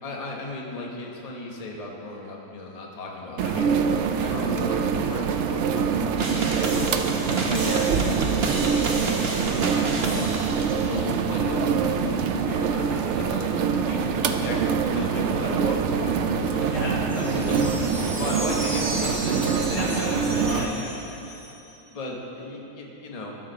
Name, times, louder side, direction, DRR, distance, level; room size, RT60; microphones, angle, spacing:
voice 1, 0.0-3.8 4.2-6.0 6.3-7.0 7.5-8.0 8.4-16.5 17.1-19.9 20.4-20.9 21.9-23.4, left 2 dB, 30° left, -2 dB, 1.0 m, -35 dB
sound 1, 3.4-20.7, right 6 dB, 65° right, 0.7 m, -25 dB
sound 2, 6.2-11.1, right 3 dB, 50° right, 1.0 m, -30 dB
voice 2, 16.5-17.3 19.6-21.1, left 1 dB, 70° left, -4 dB, 2.0 m, -34 dB
sound 3, 17.1-21.8, right 1 dB, 25° right, 1.3 m, -35 dB
12.5 x 4.7 x 6.6 m, 2.9 s
omnidirectional pair, 1.6 m